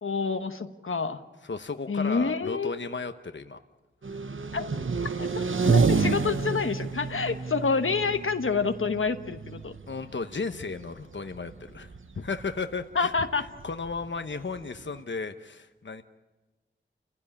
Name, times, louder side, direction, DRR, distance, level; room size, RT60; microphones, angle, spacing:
voice 1, 0.0-1.2 1.9-2.8 4.5-4.6 5.2-9.7 12.9-13.5, left 4 dB, 85° left, 8 dB, 1.2 m, -28 dB
voice 2, 1.4-3.6 9.9-16.0, left 4 dB, 65° left, 8 dB, 1.0 m, -35 dB
sound 1, 4.0-15.0, right 4 dB, 75° right, 1.0 m, -30 dB
28.5 x 16.0 x 10.0 m, 1.2 s
wide cardioid pair, 70°, 20 cm